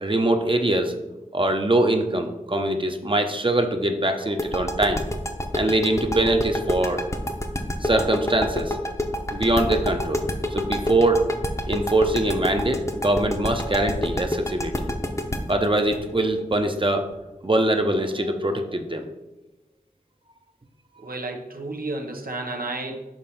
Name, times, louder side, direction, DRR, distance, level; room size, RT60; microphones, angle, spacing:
voice 1, 0.0-0.9 1.3-5.0 5.5-7.0 7.8-8.8 9.3-10.2 10.5-11.3 11.7-14.9 15.5-17.0 17.4-19.1, right 1 dB, 35° right, 5 dB, 0.8 m, -23 dB
sound 1, 4.4-17.1, left 1 dB, 20° left, 0.8 m, -28 dB
voice 2, 21.0-23.0, right 2 dB, 80° right, 2 dB, 1.0 m, -31 dB
7.3 x 3.2 x 5.6 m, 1.0 s
wide cardioid pair, 45°, 15 cm